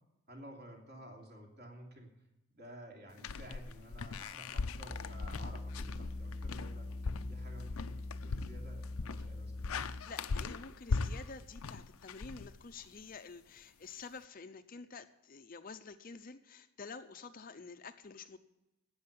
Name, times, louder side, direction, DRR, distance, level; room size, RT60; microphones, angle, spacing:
voice 1, 0.3-2.2 2.5-9.7, right 1 dB, 45° right, 0 dB, 3.0 m, -53 dB
sound 1, 3.2-13.0, left 4 dB, 80° left, 0.6 m, -39 dB
sound 2, 4.9-10.2, left 2 dB, 15° left, 0.8 m, -43 dB
voice 2, 10.1-18.4, left 4 dB, 40° left, 9 dB, 0.6 m, -49 dB
12.5 x 8.7 x 8.2 m, 0.98 s
head